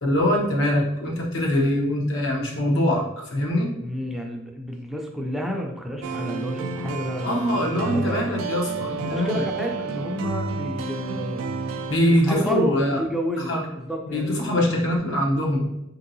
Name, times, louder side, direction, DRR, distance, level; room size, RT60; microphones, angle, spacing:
voice 1, 0.0-3.7 7.2-9.4 11.9-13.0 13.5-13.6 14.1-15.7, left 1 dB, 70° left, -2 dB, 0.8 m, -23 dB
voice 2, 3.8-8.2 9.0-11.4 12.1-14.4, equal, ahead, 0 dB, 0.4 m, -30 dB
sound 1, 6.0-12.0, right 4 dB, 85° right, 0.4 m, -30 dB
4.5 x 2.7 x 2.6 m, 0.89 s
head